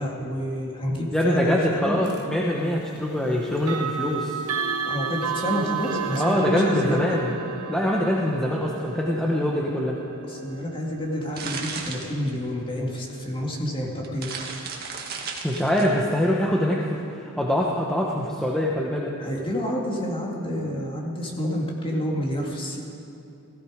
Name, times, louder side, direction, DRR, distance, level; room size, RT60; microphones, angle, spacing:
voice 1, 0.0-2.0 4.9-7.2 10.3-14.3 19.2-22.8, equal, 25° left, -1 dB, 2.2 m, -29 dB
voice 2, 1.1-4.4 6.1-7.3 7.7-10.0 15.4-19.1, left 1 dB, 5° left, -3 dB, 1.0 m, -24 dB
sound 1, 2.0-2.3 3.6-14.4, right 6 dB, 75° right, 0.9 m, -33 dB
sound 2, 11.0-12.7 13.5-13.6 13.9-16.0, right 5 dB, 45° right, 1.7 m, -35 dB
16.0 x 15.5 x 5.0 m, 2.7 s
head